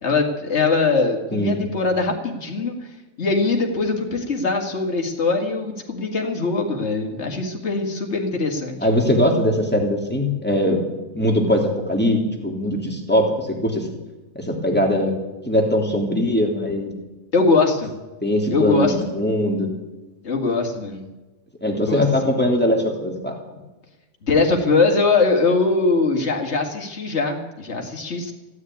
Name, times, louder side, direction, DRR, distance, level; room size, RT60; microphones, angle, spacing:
voice 1, 0.0-2.7 3.2-8.8 17.3-17.9 18.5-18.9 20.2-21.0 21.9-22.3 24.2-28.3, left 3 dB, 55° left, 2 dB, 2.5 m, -21 dB
voice 2, 8.8-10.8 11.1-13.9 14.3-15.1 15.5-16.9 18.2-19.7 21.6-23.3, left 1 dB, 5° left, 0 dB, 3.0 m, -21 dB
15.5 x 9.8 x 9.4 m, 1.1 s
omnidirectional pair, 1.4 m